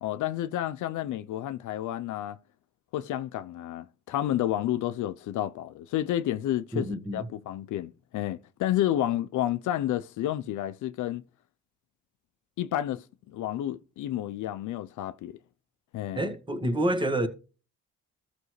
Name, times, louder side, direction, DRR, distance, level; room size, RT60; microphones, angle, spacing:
voice 1, 0.0-2.4 2.9-11.2 12.6-15.4 15.9-16.3, left 12 dB, 75° left, 0.6 m, -30 dB
voice 2, 6.7-7.3 16.1-17.3, right 1 dB, 15° right, 1.6 m, -28 dB
13.5 x 6.1 x 3.2 m
cardioid pair, 90°, 30 cm